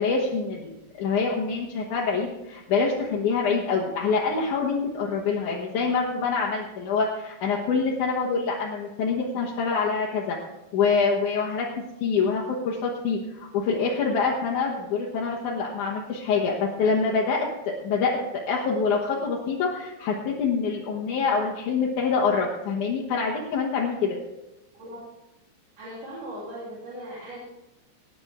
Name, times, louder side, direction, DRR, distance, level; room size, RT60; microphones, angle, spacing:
voice 1, 0.0-10.4 10.7-11.7 12.0-18.2 18.5-24.2, left 5 dB, 65° left, -3 dB, 2.7 m, -25 dB
voice 2, 25.8-27.4, right 1 dB, 65° right, -9 dB, 5.3 m, -38 dB
18.5 x 9.9 x 3.7 m, 0.93 s
omnidirectional pair, 4.0 m